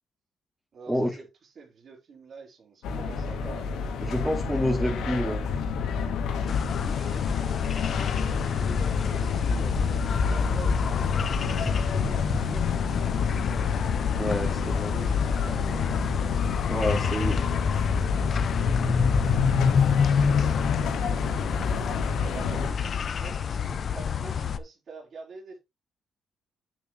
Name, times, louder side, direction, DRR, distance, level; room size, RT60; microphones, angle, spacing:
voice 1, 0.7-1.3 1.6-3.7 6.8-13.7 14.4-16.1 22.1-25.6, right 4 dB, 50° right, 4.3 m, -47 dB
sound 1, 2.8-22.7, left 4 dB, 90° left, 2.5 m, -30 dB
voice 2, 4.0-5.4 14.1-14.9 16.7-17.4, equal, ahead, 2.8 m, -28 dB
sound 2, 5.4-20.0, left 9 dB, 70° left, 0.5 m, -32 dB
sound 3, 6.5-24.6, left 6 dB, 50° left, 0.9 m, -28 dB
9.2 x 8.0 x 3.2 m
cardioid pair, 100°, 0 cm